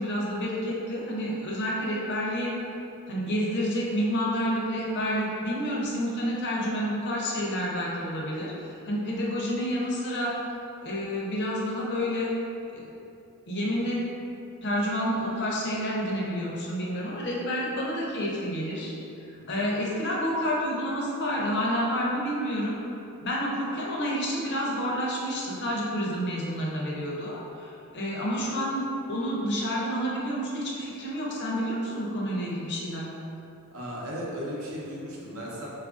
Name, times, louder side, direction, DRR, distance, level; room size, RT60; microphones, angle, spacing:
voice 1, 0.0-2.5 3.1-10.3 10.8-12.3 12.7-12.9 13.5-14.0 14.6-18.9 19.3-22.8 23.2-33.1, equal, 50° left, -4 dB, 0.6 m, -29 dB
voice 2, 33.7-35.7, equal, 65° right, -5 dB, 0.7 m, -36 dB
4.3 x 2.4 x 2.4 m, 2.7 s
head